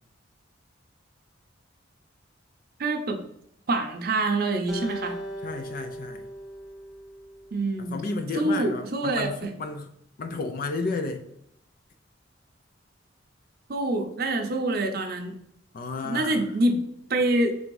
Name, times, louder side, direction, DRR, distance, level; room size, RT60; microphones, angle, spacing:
voice 1, 2.8-3.2 3.7-5.1 7.5-8.0 8.3-9.5 13.7-15.4 16.0-16.8 17.1-17.6, right 2 dB, 55° right, 4 dB, 0.6 m, -26 dB
Acoustic guitar, 4.7-8.0, equal, ahead, 0.8 m, -38 dB
voice 2, 5.4-6.3 7.8-9.9 10.2-11.3 15.7-16.5, left 3 dB, 45° left, 6 dB, 0.4 m, -32 dB
3.4 x 2.6 x 4.6 m, 0.72 s
head